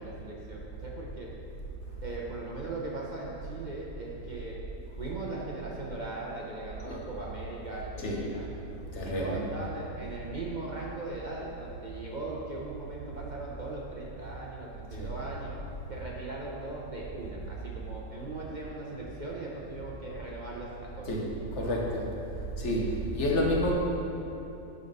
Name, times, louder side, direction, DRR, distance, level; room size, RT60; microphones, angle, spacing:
voice 1, 0.0-1.3 2.0-4.6 5.0-8.5 9.0-15.6 15.9-21.1, right 2 dB, 55° right, -4 dB, 0.5 m, -39 dB
voice 2, 8.9-9.4 15.0-15.1 21.1-22.1 22.6-23.7, left 1 dB, 45° left, -2 dB, 1.3 m, -29 dB
10.5 x 4.1 x 5.3 m, 2.9 s
omnidirectional pair, 2.0 m